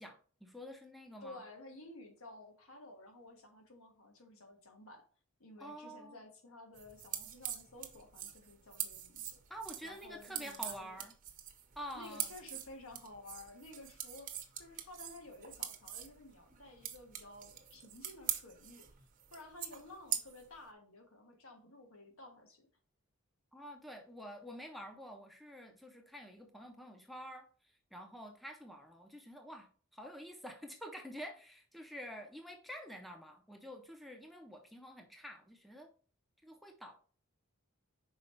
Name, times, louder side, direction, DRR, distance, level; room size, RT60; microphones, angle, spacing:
voice 1, 0.0-1.4 5.6-6.2 9.5-11.2 11.8-12.3 23.5-35.9 36.4-37.0, equal, ahead, 4 dB, 0.5 m, -48 dB
voice 2, 1.2-5.0 5.4-9.4 9.8-11.0 11.9-14.3 14.6-18.8 19.3-22.6, left 2 dB, 75° left, 4 dB, 1.3 m, -53 dB
sound 1, 6.7-20.6, right 10 dB, 40° right, 0.7 m, -43 dB
5.4 x 4.3 x 4.2 m, 0.42 s
head